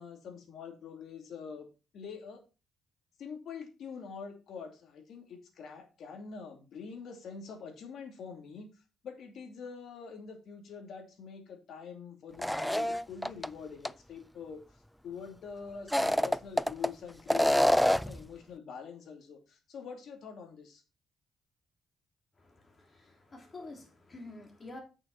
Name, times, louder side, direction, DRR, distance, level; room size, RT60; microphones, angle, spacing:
voice 1, 0.0-1.7 1.9-2.4 3.2-8.7 9.0-14.6 15.0-20.8, left 6 dB, 70° left, 2.5 m, -45 dB
sound 1, 12.4-13.5 13.9-14.0 15.8-16.9 17.3-18.2, equal, 5° left, 0.3 m, -26 dB
voice 2, 22.4-24.8, left 2 dB, 30° left, 3.3 m, -48 dB
8.7 x 6.2 x 4.3 m
cardioid pair, 90°, 0 cm